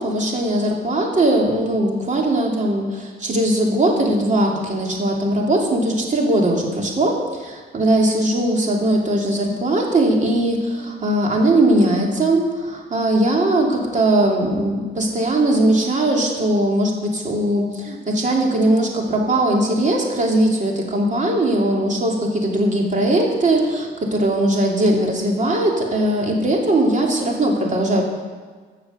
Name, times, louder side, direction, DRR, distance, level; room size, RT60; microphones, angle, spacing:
voice 1, 0.0-28.0, right 1 dB, 40° right, 0 dB, 2.8 m, -19 dB
14.0 x 6.9 x 6.9 m, 1.5 s
cardioid pair, 90°, 20 cm